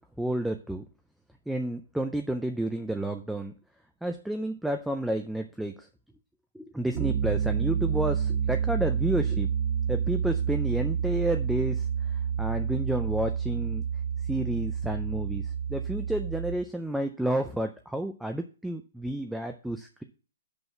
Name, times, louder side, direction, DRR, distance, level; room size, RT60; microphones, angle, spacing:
voice 1, 0.2-0.8 1.5-3.5 4.0-5.9 6.5-9.5 9.9-13.8 14.2-20.0, right 1 dB, ahead, 6 dB, 0.3 m, -31 dB
Piano, 7.0-16.6, right 7 dB, 60° right, 1.6 m, -29 dB
6.1 x 5.5 x 5.6 m, 0.36 s
hypercardioid pair, 175°, 0 cm